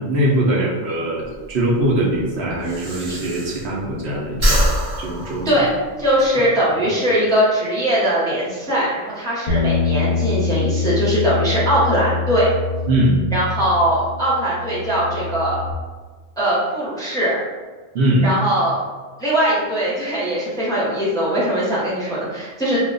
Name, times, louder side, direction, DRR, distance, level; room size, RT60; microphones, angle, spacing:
voice 1, 0.0-4.6 5.0-5.6 6.3-6.4 6.8-6.9 12.9-13.2 17.9-18.3, right 1 dB, 70° right, -3 dB, 0.9 m, -21 dB
Breathing, 1.2-4.0 4.3-6.3, equal, 50° right, 0.7 m, -23 dB
voice 2, 6.0-12.5 13.3-15.6 16.4-17.4 18.2-18.8 19.2-22.8, equal, 5° left, -8 dB, 0.5 m, -20 dB
Bass guitar, 9.5-15.7, left 4 dB, 50° left, 0.6 m, -24 dB
2.3 x 2.1 x 3.8 m, 1.4 s
omnidirectional pair, 1.2 m